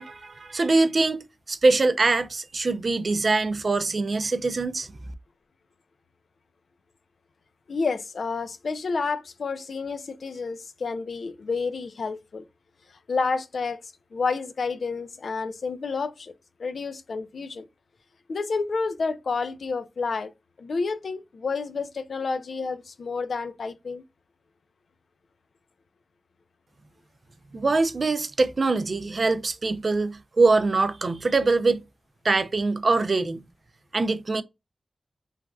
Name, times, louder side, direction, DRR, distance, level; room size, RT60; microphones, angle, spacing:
voice 1, 0.0-5.0 27.5-31.8 32.2-33.5 33.9-34.4, right 3 dB, 60° right, 0.4 m, -23 dB
voice 2, 7.7-12.4 13.1-13.8 14.1-16.3 16.6-17.6 18.3-20.3 20.6-24.0, left 4 dB, 80° left, 0.4 m, -30 dB
3.2 x 2.3 x 2.2 m
cardioid pair, 45°, 0 cm